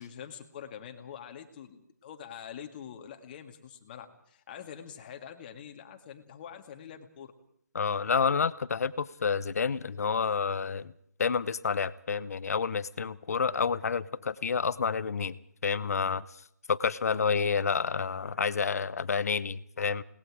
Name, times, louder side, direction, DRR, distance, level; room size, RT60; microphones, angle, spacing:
voice 1, 0.0-7.3, left 8 dB, 30° left, 6 dB, 2.0 m, -45 dB
voice 2, 7.7-10.9 11.2-15.4 15.6-16.3 16.7-20.0, left 5 dB, 55° left, 18 dB, 0.9 m, -29 dB
29.5 x 19.5 x 4.9 m, 0.67 s
figure-of-eight pair, 155°, 10 cm